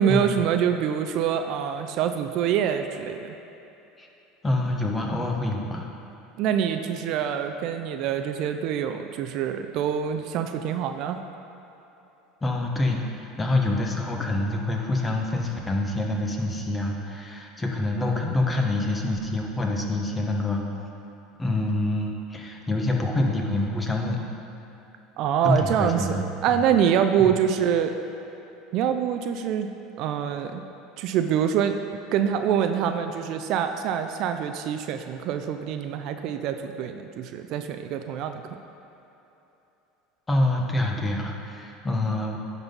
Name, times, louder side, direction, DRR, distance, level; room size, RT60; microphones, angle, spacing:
voice 1, 0.0-3.3 6.4-11.2 25.2-27.9 28.7-30.6 31.0-31.8 32.1-38.4, right 8 dB, 60° right, 7 dB, 0.4 m, -25 dB
voice 2, 4.4-5.8 12.4-20.6 21.4-24.2 25.4-26.6 27.2-27.3 40.3-42.4, left 2 dB, 15° left, 0 dB, 1.1 m, -26 dB
10.5 x 4.1 x 5.3 m, 2.9 s
supercardioid pair, 105°, 0 cm